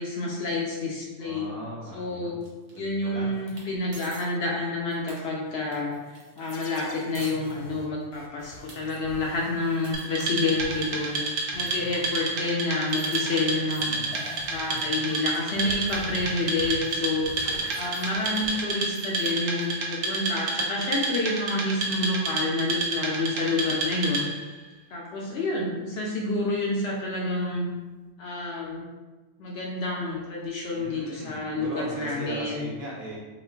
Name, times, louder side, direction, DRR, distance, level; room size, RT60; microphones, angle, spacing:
voice 1, 0.0-1.5 1.9-2.4 2.8-11.2 11.5-14.1 14.5-17.3 17.8-24.3 24.9-27.7 28.2-28.8 29.4-32.6, left 2 dB, 65° left, -2 dB, 0.6 m, -29 dB
voice 2, 1.2-2.3 2.7-3.3 13.6-14.3 30.7-33.2, right 1 dB, 45° right, -4 dB, 0.8 m, -39 dB
sound 1, 2.4-3.0 3.3-3.7 3.9-4.2 4.7-8.1 8.5-8.8 9.2-11.3 11.7-11.8 12.1-13.9 14.1-14.4 14.8-14.9 15.1-15.2 15.5-16.1 16.7-16.8 17.1-18.5 18.8-19.7, right 2 dB, 85° right, 1.3 m, -50 dB
sound 2, 6.4-11.3 11.5-19.3, left 2 dB, 90° left, 1.0 m, -44 dB
Wood, 9.9-24.5, right 3 dB, 70° right, 1.0 m, -30 dB
3.0 x 2.2 x 3.3 m, 1.2 s
omnidirectional pair, 1.5 m